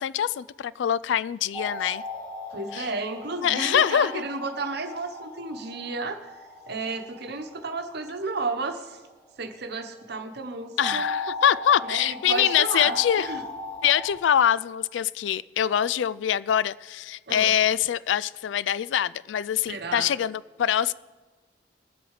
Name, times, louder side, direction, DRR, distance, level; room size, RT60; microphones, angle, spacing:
voice 1, 0.0-2.0 2.7-2.9 3.4-4.2 10.8-13.3 13.8-20.9, left 9 dB, 75° left, 0.3 m, -24 dB
sound 1, 1.5-8.1 10.8-14.1, left 2 dB, 10° left, 3.5 m, -36 dB
voice 2, 2.5-6.4 6.7-9.0 9.4-11.1 11.8-13.4 17.3-17.6 19.7-20.1, right 3 dB, 60° right, 1.2 m, -33 dB
20.0 x 7.8 x 4.9 m
head